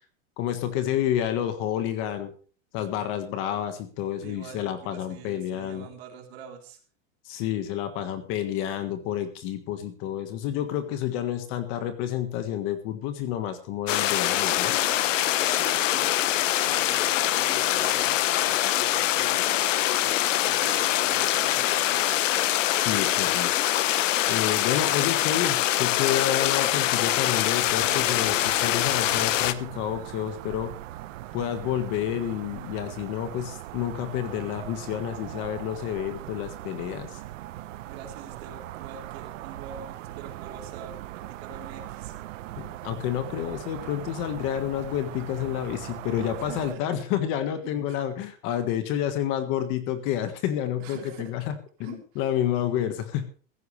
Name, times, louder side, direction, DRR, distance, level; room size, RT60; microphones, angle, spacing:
voice 1, 0.4-2.3 2.7-5.9 7.2-14.7 22.7-23.7 24.3-30.7 31.3-37.2 42.6-51.5 51.8-53.2, left 11 dB, 30° left, 9 dB, 1.6 m, -29 dB
voice 2, 4.2-6.8 14.6-22.2 37.8-42.2 46.5-47.1 47.9-48.0 50.8-51.3 51.8-52.2, right 7 dB, 55° right, 3 dB, 3.8 m, -45 dB
sound 1, 13.9-29.5, left 13 dB, 75° left, 1.2 m, -24 dB
sound 2, 27.6-46.8, right 15 dB, 75° right, 1.0 m, -40 dB
15.5 x 15.0 x 3.3 m, 0.39 s
supercardioid pair, 180°, 38 cm